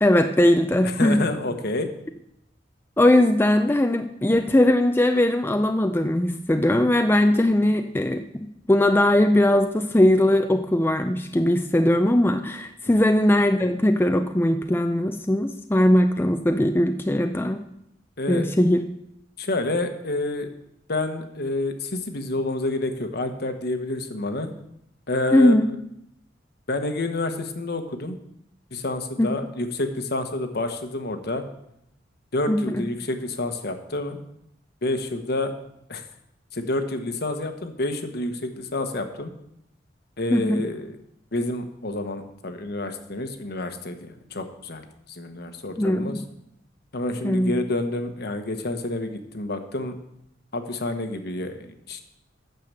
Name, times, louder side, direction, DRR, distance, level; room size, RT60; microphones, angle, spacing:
voice 1, 0.0-1.2 3.0-17.6 18.3-18.8 25.3-25.7 29.2-29.3 32.5-32.8 40.3-40.6 45.8-46.2 47.2-47.5, left 1 dB, 10° left, 6 dB, 0.4 m, -20 dB
voice 2, 0.8-1.9 12.9-13.1 18.2-18.5 19.4-20.5 20.9-24.5 25.1-25.5 26.7-28.2 28.7-31.4 32.3-34.2 34.8-35.5 35.9-36.0 36.5-39.3 40.2-41.0 41.3-46.2 46.9-50.0 50.5-52.0, left 2 dB, 60° left, 7 dB, 1.2 m, -28 dB
9.3 x 6.8 x 6.9 m, 0.80 s
head